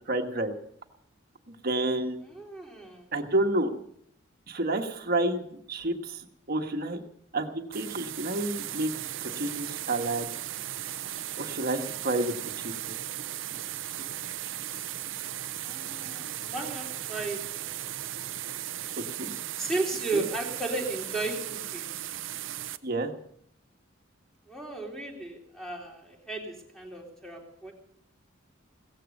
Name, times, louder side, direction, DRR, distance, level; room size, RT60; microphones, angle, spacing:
voice 1, 0.1-0.5 1.5-2.1 3.1-3.7 4.5-5.4 5.7-6.2 6.5-7.0 7.3-8.9 9.3-10.3 11.4-12.3 12.6-12.7 19.2-19.3 20.1-20.2 22.8-23.1, right 2 dB, 50° right, 5 dB, 1.5 m, -29 dB
voice 2, 2.2-3.0 15.6-17.8 19.6-21.8 24.5-27.7, right 2 dB, ahead, -1 dB, 3.4 m, -35 dB
sound 1, 7.7-22.8, right 12 dB, 70° right, 0.7 m, -37 dB
17.0 x 14.5 x 5.3 m, 0.66 s
head